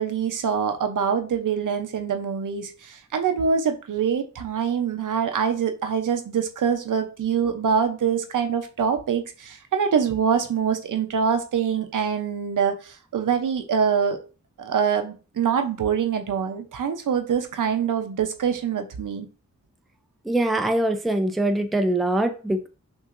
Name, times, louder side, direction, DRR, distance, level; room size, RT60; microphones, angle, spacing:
voice 1, 0.0-14.2 14.6-19.3, right 7 dB, 85° right, 6 dB, 0.7 m, -24 dB
voice 2, 20.3-22.7, right 1 dB, ahead, 6 dB, 0.3 m, -23 dB
6.1 x 2.6 x 2.5 m, 0.34 s
wide cardioid pair, 160°, 31 cm